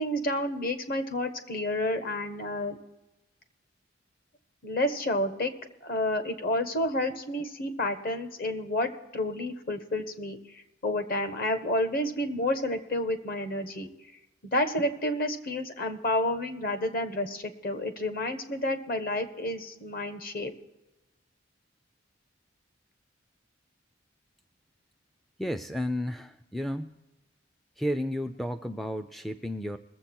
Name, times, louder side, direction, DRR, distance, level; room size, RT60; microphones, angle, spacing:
voice 1, 0.0-2.8 4.6-5.5 5.8-13.9 14.5-20.5, left 1 dB, 50° left, 8 dB, 1.3 m, -30 dB
voice 2, 25.4-27.0 27.8-29.8, equal, ahead, 7 dB, 0.4 m, -32 dB
21.5 x 7.6 x 4.4 m, 1.0 s
head